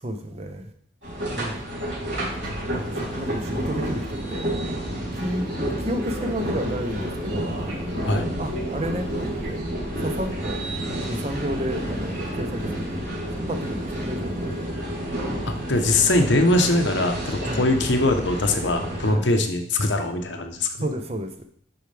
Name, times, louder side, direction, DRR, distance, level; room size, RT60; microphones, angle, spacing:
voice 1, 0.0-0.6 1.3-1.6 2.7-4.4 5.2-5.5 5.8-8.0 8.4-9.6 10.0-10.6 10.9-12.7 13.5-14.7 17.4-17.6 19.1-19.2 20.8-21.3, equal, 30° right, 5 dB, 0.7 m, -31 dB
sound 1, 1.0-19.1, right 1 dB, 65° right, 3.1 m, -30 dB
voice 2, 15.5-20.9, left 2 dB, 70° left, 5 dB, 0.9 m, -22 dB
10.5 x 4.8 x 3.4 m, 0.64 s
head